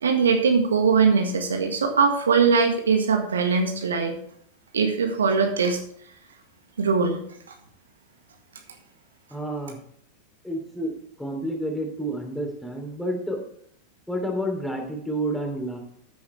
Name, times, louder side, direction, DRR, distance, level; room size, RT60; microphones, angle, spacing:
voice 1, 0.0-4.1 4.7-5.8 6.8-7.2, right 5 dB, 70° right, 4 dB, 1.7 m, -21 dB
voice 2, 9.3-9.8 10.4-10.9 11.2-13.4 14.1-15.8, right 1 dB, ahead, 2 dB, 3.2 m, -29 dB
13.5 x 9.6 x 3.4 m, 0.64 s
figure-of-eight pair, 90°, 0 cm